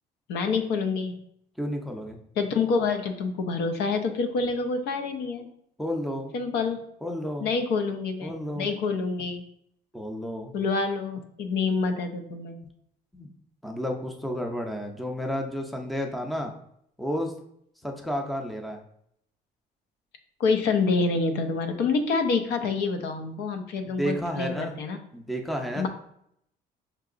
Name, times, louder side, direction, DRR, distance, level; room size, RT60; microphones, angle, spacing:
voice 1, 0.3-1.2 2.4-5.5 6.3-6.8 7.4-9.4 10.5-12.6 20.4-25.0 25.7-25.9, left 4 dB, 80° left, 6 dB, 0.6 m, -27 dB
voice 2, 1.6-2.2 5.8-6.3 7.0-7.5 8.2-8.7 9.9-10.5 13.1-13.3 13.6-16.5 17.0-17.3 17.8-18.8 23.8-24.8 25.1-25.9, equal, ahead, 3 dB, 0.5 m, -31 dB
5.8 x 2.8 x 2.5 m, 0.72 s
cardioid pair, 110°, 17 cm